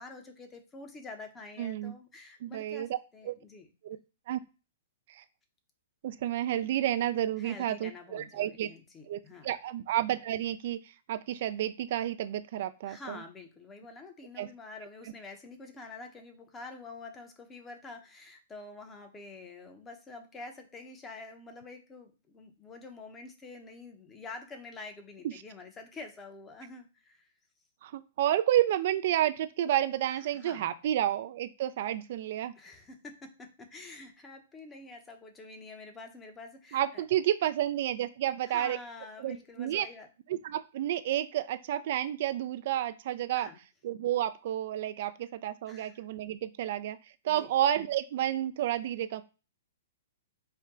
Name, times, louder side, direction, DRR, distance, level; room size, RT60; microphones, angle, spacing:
voice 1, 0.0-3.7 7.4-9.5 12.8-27.3 30.0-30.7 32.6-37.0 38.4-40.1 43.3-43.6 45.0-45.1 45.7-46.1 47.3-47.5, left 3 dB, 15° left, 5 dB, 0.8 m, -47 dB
voice 2, 1.6-1.9 2.4-2.9 3.3-3.4 3.8-4.0 4.3-4.4 5.1-5.2 6.0-8.7 9.1-10.8 11.1-13.2 14.4-14.5 27.8-32.5 36.7-38.8 39.2-39.9 40.3-43.5 43.8-47.0 47.2-49.2, right 12 dB, 55° right, 11 dB, 0.3 m, -30 dB
4.3 x 2.2 x 3.6 m, 0.32 s
hypercardioid pair, 130°, 0 cm